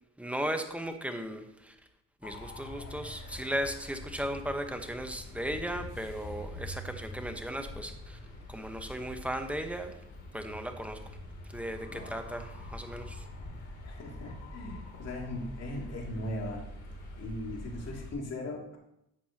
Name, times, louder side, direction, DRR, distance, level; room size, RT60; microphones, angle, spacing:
voice 1, 0.2-1.7 2.2-8.2 8.5-9.9 10.3-11.0 11.5-13.2, right 1 dB, 5° right, 6 dB, 1.2 m, -36 dB
sound 1, 2.2-18.1, left 1 dB, 75° left, 3.1 m, -45 dB
voice 2, 13.8-16.6 17.2-18.8, left 1 dB, 55° left, -1 dB, 2.8 m, -39 dB
11.5 x 7.9 x 2.9 m, 0.81 s
cardioid pair, 90°, 30 cm